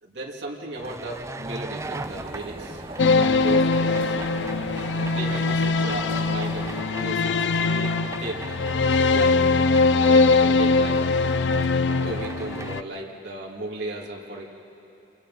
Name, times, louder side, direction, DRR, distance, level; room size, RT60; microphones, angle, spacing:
voice 1, 0.0-2.8 3.1-4.2 4.9-8.5 9.1-9.5 10.0-11.1 12.0-14.4, right 2 dB, 70° right, -3 dB, 2.6 m, -35 dB
sound 1, 0.7-12.8, right 2 dB, 15° right, 0.4 m, -39 dB
sound 2, 1.8-6.8, right 1 dB, 30° right, 1.4 m, -39 dB
sound 3, 3.0-12.8, left 3 dB, 75° left, 0.5 m, -21 dB
28.5 x 27.0 x 4.2 m, 2.7 s
head